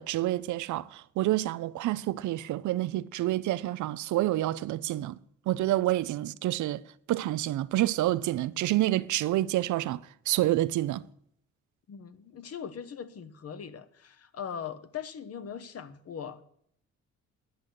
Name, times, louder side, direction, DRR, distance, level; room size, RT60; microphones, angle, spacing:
voice 1, 0.0-5.2 5.5-6.8 7.1-11.0, right 15 dB, 75° right, 0.6 m, -28 dB
voice 2, 11.9-16.4, left 7 dB, 55° left, 1.1 m, -40 dB
10.5 x 6.3 x 8.3 m
cardioid pair, 90°, 30 cm